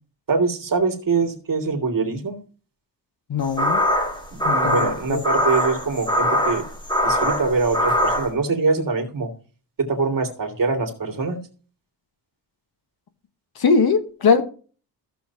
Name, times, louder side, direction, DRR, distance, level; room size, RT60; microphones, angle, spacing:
voice 1, 0.3-2.4 4.5-6.6 7.0-9.3 9.8-11.4, right 4 dB, 50° right, 4 dB, 2.5 m, -23 dB
voice 2, 3.3-3.8 4.4-5.2 13.6-14.4, left 5 dB, 60° left, 9 dB, 1.3 m, -20 dB
sound 1, 3.4-8.3, equal, 10° left, 1.6 m, -22 dB
15.0 x 7.0 x 2.8 m, 0.38 s
wide cardioid pair, 155°, 41 cm